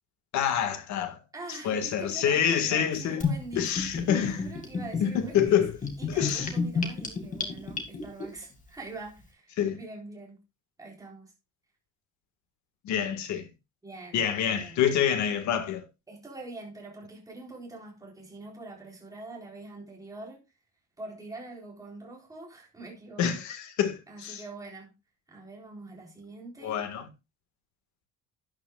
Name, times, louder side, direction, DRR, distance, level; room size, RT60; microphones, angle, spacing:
voice 1, 0.3-1.2 1.6-3.2 3.6-4.4 5.0-5.7 6.1-6.5 9.6-9.8 12.8-13.5 14.1-15.8 23.2-24.4 26.6-27.1, left 9 dB, 60° left, 1.7 m, -27 dB
voice 2, 1.3-5.6 6.0-10.4 10.8-11.3 13.8-14.8 16.1-20.4 21.0-23.4 24.1-24.9 25.3-26.8, right 2 dB, 10° right, 4.0 m, -44 dB
Gurgling / Bathtub (filling or washing), 3.2-8.3, left 4 dB, 25° left, 2.2 m, -31 dB
12.0 x 9.9 x 2.4 m
cardioid pair, 175°, 32 cm